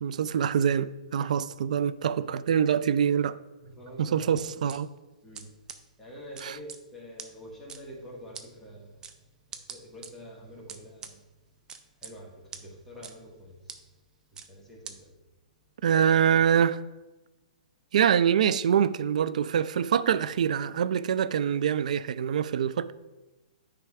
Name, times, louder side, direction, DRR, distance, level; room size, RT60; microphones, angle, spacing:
voice 1, 0.0-3.4 4.0-4.9 6.4-6.6 15.8-16.8 17.9-22.9, right 8 dB, 65° right, 0.4 m, -25 dB
voice 2, 3.8-4.3 5.2-5.5 6.0-8.9 9.7-11.1 12.0-12.3 12.6-13.5 14.5-15.0, equal, 5° left, 1.9 m, -45 dB
sound 1, 4.4-4.8 5.3-5.4 5.7-5.8 6.4-6.8 7.2-7.3 7.7-7.8 8.3-8.5 9.0-9.1 9.5-10.1 10.7-11.1 11.7-12.1 12.5-12.6 13.0-13.1 13.7-13.8 14.4-14.5 14.9-15.0, right 6 dB, 15° right, 0.5 m, -41 dB
9.2 x 3.4 x 4.9 m
hypercardioid pair, 140°, 4 cm